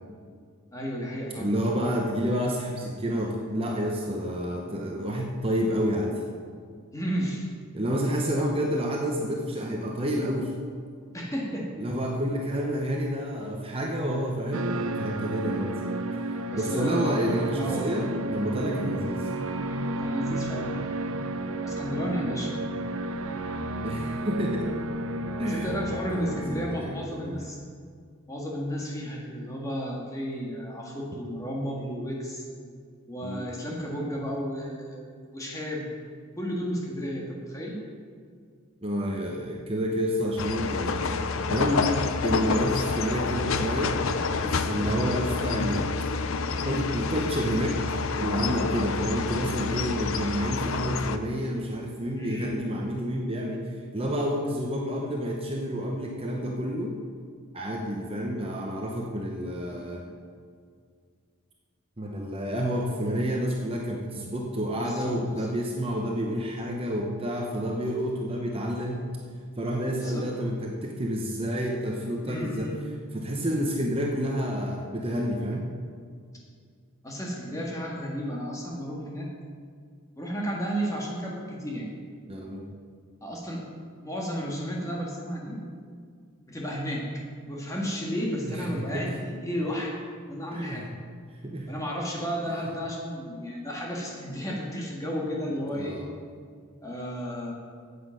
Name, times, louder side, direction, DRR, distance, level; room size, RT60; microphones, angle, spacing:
voice 1, 0.7-1.5 6.9-7.5 11.1-11.7 16.5-17.1 17.6-17.9 18.7-19.0 20.0-20.9 21.6-22.5 25.5-27.6 28.3-32.4 33.1-35.0 35.3-35.9 36.4-37.8 44.8-45.0 52.2-52.6 64.8-65.5 69.9-70.3 72.2-72.8 77.0-79.3 80.2-81.9 83.2-83.6 84.0-85.6 86.5-87.1 87.4-89.9 90.3-90.9 91.7-96.0 96.8-97.5, equal, 15° left, -3 dB, 1.7 m, -33 dB
voice 2, 1.4-6.2 7.7-10.5 11.8-15.8 16.3-19.3 23.8-24.7 25.4-27.5 33.2-33.5 38.8-41.0 41.5-41.9 42.2-43.9 44.4-45.9 46.6-47.7 48.2-53.6 53.9-57.0 57.5-60.0 62.0-69.1 69.6-72.7 73.1-75.6 82.3-82.7 88.4-89.2 90.5-90.9 91.4-91.7 95.7-96.1, equal, 25° right, -1 dB, 0.9 m, -29 dB
Cymbal's Reverse, 14.5-26.8, right 1 dB, 70° right, 0.6 m, -32 dB
sound 1, 40.4-51.2, left 4 dB, 65° left, 0.6 m, -28 dB
9.6 x 8.4 x 6.5 m, 2.1 s
head